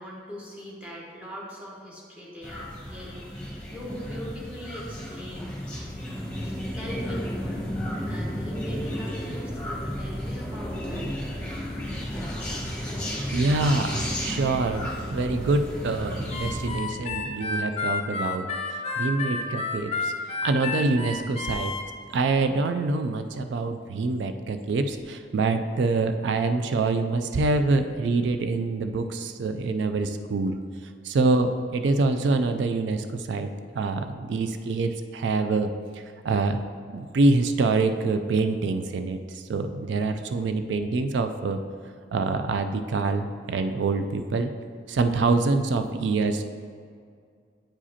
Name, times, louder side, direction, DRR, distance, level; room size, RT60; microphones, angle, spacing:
voice 1, 0.0-5.6 6.3-7.7 8.1-11.1, equal, 10° right, -4 dB, 1.1 m, -40 dB
sound 1, 2.4-16.8, equal, 5° left, 1.5 m, -33 dB
voice 2, 13.3-21.7 22.1-30.6 31.0-33.5 33.7-36.6 36.9-41.6 42.1-44.5 44.9-46.4, right 3 dB, 90° right, 8 dB, 0.4 m, -25 dB
Harmonica, 16.3-21.8, left 4 dB, 35° left, 0.5 m, -30 dB
8.8 x 4.9 x 2.8 m, 2.2 s
head